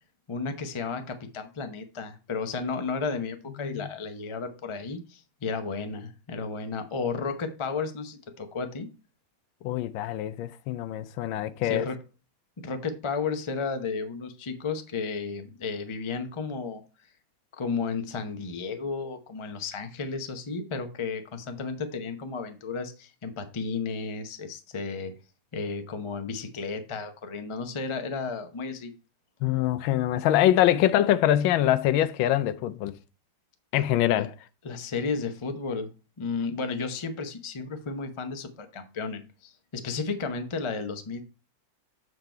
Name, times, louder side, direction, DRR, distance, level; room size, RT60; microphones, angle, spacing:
voice 1, 0.3-8.9 11.6-12.0 12.6-16.8 17.6-25.1 25.5-28.9 34.1-34.3 34.6-35.9 36.2-41.2, left 4 dB, 40° left, 0.4 m, -33 dB
voice 2, 9.6-11.9 29.4-33.0 33.7-34.3, left 12 dB, 85° left, 1.4 m, -24 dB
7.5 x 4.7 x 4.4 m
omnidirectional pair, 2.1 m